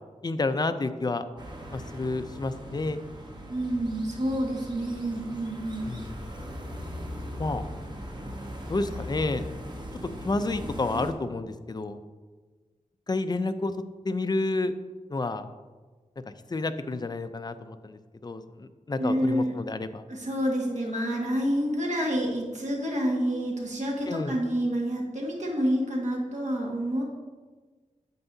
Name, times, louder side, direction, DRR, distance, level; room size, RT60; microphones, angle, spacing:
voice 1, 0.2-1.2 1.7-3.0 5.8-6.2 7.4-7.6 8.7-9.4 10.2-12.0 13.1-13.7 14.0-14.7 15.1-15.4 16.5-20.0 24.1-24.3, left 3 dB, 30° left, 10 dB, 0.4 m, -30 dB
sound 1, 1.4-11.1, equal, 35° right, 1.1 m, -39 dB
voice 2, 3.5-5.9 19.0-19.6 20.1-27.0, equal, 65° right, -1 dB, 1.8 m, -28 dB
9.3 x 7.8 x 2.7 m, 1.4 s
wide cardioid pair, 110°, 13 cm